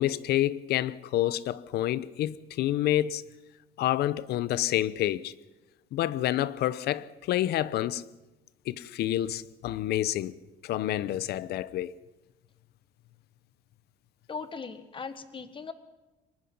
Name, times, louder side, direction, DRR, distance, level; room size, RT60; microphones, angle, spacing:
voice 1, 0.0-3.2 3.8-5.3 5.9-8.0 8.7-10.4 10.6-11.9, left 13 dB, 75° left, 0.8 m, -28 dB
voice 2, 14.3-15.7, left 5 dB, 30° left, 1.6 m, -39 dB
23.5 x 20.0 x 5.5 m
cardioid pair, 110°, 17 cm